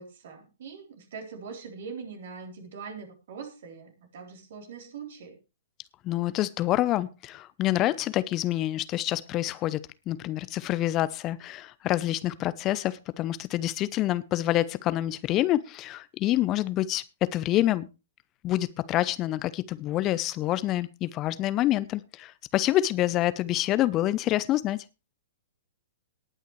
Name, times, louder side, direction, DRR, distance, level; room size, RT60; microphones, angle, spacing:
voice 1, 0.0-5.4, right 5 dB, 60° right, 3.7 m, -42 dB
voice 2, 6.0-17.9 18.4-24.8, left 14 dB, 30° left, 0.7 m, -27 dB
19.0 x 9.1 x 3.2 m
figure-of-eight pair, 110°, 0 cm